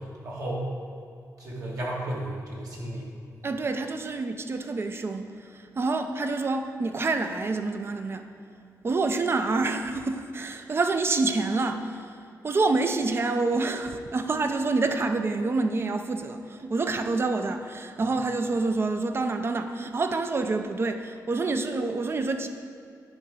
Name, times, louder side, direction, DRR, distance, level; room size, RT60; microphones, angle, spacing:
voice 1, 0.2-0.7 1.4-3.1, right 1 dB, 65° right, -5 dB, 2.2 m, -33 dB
voice 2, 3.4-8.3 8.8-22.5, right 3 dB, 35° right, 7 dB, 0.6 m, -27 dB
9.7 x 5.0 x 5.5 m, 2.4 s
cardioid pair, 105°, 7 cm